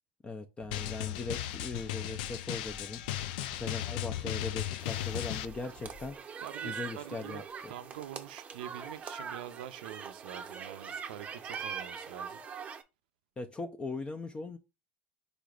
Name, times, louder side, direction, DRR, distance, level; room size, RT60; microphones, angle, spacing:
voice 1, 0.2-3.0 3.6-6.2 6.6-7.7 13.4-14.6, left 3 dB, 20° left, 0.5 m, -39 dB
Drum, 0.7-5.5, left 13 dB, 80° left, 0.4 m, -36 dB
sound 1, 4.8-6.2, left 2 dB, 55° left, 1.7 m, -53 dB
sound 2, 4.8-12.8, right 6 dB, 25° right, 0.6 m, -43 dB
voice 2, 6.4-12.4, right 12 dB, 90° right, 0.5 m, -45 dB
4.8 x 4.1 x 2.4 m
supercardioid pair, 115°, 5 cm